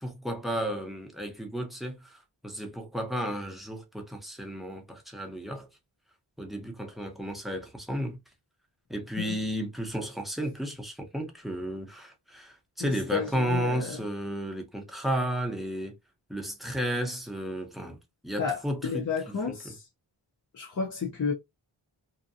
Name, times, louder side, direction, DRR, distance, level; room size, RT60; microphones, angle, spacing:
voice 1, 0.0-2.2 2.4-5.7 6.4-8.2 8.9-15.9 16.3-18.0 18.2-19.0, equal, ahead, 0.7 m, -33 dB
voice 2, 12.8-14.0 18.4-19.9 20.5-21.3, left 6 dB, 40° left, 0.6 m, -32 dB
2.6 x 2.2 x 2.5 m
wide cardioid pair, 95°, 49 cm